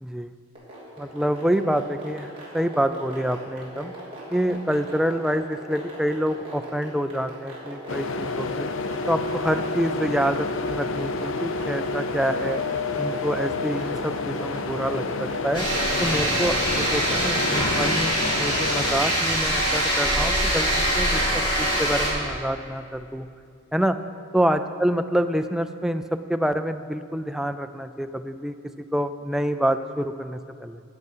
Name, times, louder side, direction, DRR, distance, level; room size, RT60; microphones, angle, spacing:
voice 1, 0.0-0.3 1.0-3.9 4.3-8.7 9.1-12.6 13.0-15.7 16.0-23.3 23.7-24.0 24.3-28.6 28.9-30.8, equal, ahead, 8 dB, 0.3 m, -27 dB
sound 1, 0.6-17.5, right 1 dB, 25° right, 3.2 m, -38 dB
sound 2, 7.9-19.0, left 3 dB, 65° left, 0.6 m, -29 dB
sound 3, 15.5-22.1, equal, 20° left, 3.2 m, -23 dB
13.5 x 8.0 x 5.5 m, 2.4 s
head